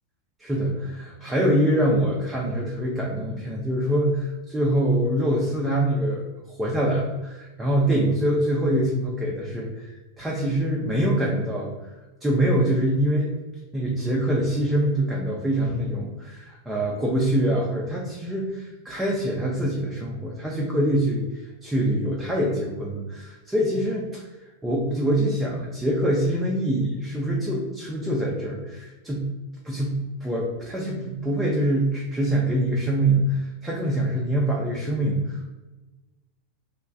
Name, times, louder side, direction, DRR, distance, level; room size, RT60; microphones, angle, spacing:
voice 1, 0.4-9.9 10.2-11.7 12.2-13.3 13.7-24.2 24.6-29.3 29.6-35.5, right 1 dB, 10° right, -3 dB, 0.5 m, -24 dB
3.0 x 2.2 x 2.5 m, 1.1 s
figure-of-eight pair, 90°, 0 cm